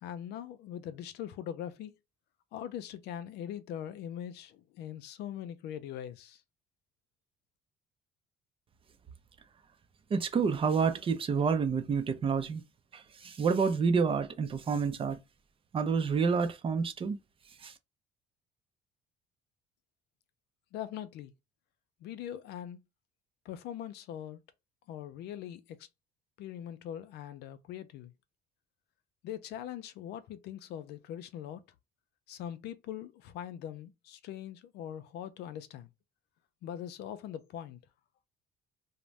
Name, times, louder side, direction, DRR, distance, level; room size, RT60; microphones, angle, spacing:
voice 1, 0.0-1.9 2.5-6.4 20.7-21.3 22.0-22.8 23.4-24.4 24.9-25.9 26.4-28.1 29.2-31.6 32.3-35.9 36.6-37.8, left 10 dB, 80° left, 0.5 m, -42 dB
voice 2, 10.1-12.6 12.9-15.2 15.7-17.2 17.6-17.7, right 5 dB, 30° right, 0.5 m, -28 dB
2.5 x 2.1 x 3.1 m
cardioid pair, 110°, 17 cm